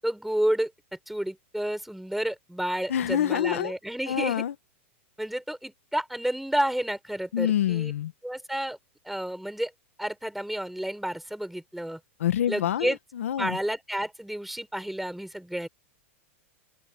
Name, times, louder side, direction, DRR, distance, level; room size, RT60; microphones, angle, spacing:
voice 1, 0.0-0.7 1.1-4.4 5.2-7.9 8.2-8.8 9.0-9.7 10.0-12.0 12.5-13.0 13.4-15.7, right 1 dB, ahead, 7.3 m, -30 dB
voice 2, 2.9-3.7 4.1-4.5 7.3-8.1 12.2-13.6, left 10 dB, 85° left, 1.7 m, -26 dB
open air
supercardioid pair, 135°, 7 cm